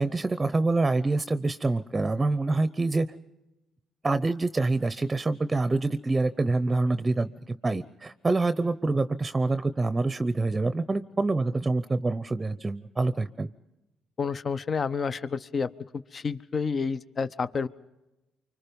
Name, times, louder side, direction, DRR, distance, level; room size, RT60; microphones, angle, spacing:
voice 1, 0.0-3.1 4.0-13.5, right 3 dB, 20° right, 12 dB, 0.8 m, -26 dB
voice 2, 14.2-15.7 16.1-17.7, left 5 dB, 40° left, 14 dB, 0.8 m, -29 dB
25.0 x 25.0 x 5.3 m, 1.0 s
cardioid pair, 80°, 0 cm